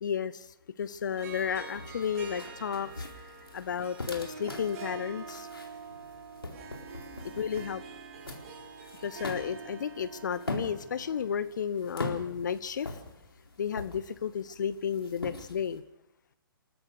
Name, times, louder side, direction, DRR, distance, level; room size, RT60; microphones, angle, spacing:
voice 1, 0.0-5.5 7.2-7.8 9.0-13.0 13.6-15.8, left 7 dB, 50° left, 15 dB, 0.9 m, -33 dB
sound 1, 0.8-15.8, left 2 dB, 80° left, 4.0 m, -43 dB
Harp, 1.1-11.4, right 5 dB, 40° right, 3.3 m, -46 dB
29.5 x 13.5 x 6.6 m, 0.83 s
figure-of-eight pair, 125°, 12 cm